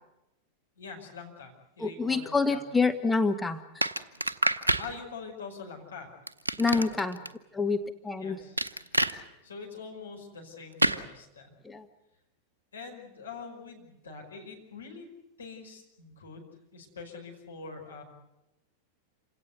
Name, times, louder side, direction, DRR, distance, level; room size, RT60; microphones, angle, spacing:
voice 1, 0.8-2.6 4.8-6.1 6.5-7.1 8.2-8.6 9.4-11.5 12.7-15.1 15.4-18.0, left 4 dB, 70° left, 1 dB, 5.2 m, -44 dB
voice 2, 1.8-3.6 6.6-7.2 7.5-8.4 9.1-9.3 11.6-11.9, left 4 dB, 10° left, 8 dB, 1.0 m, -27 dB
Breaking Bones, 3.8-4.9 6.3-7.3 8.6-9.1 10.8-11.0, right 1 dB, 80° right, 0.8 m, -27 dB
27.5 x 17.5 x 8.1 m, 0.93 s
figure-of-eight pair, 90°, 0 cm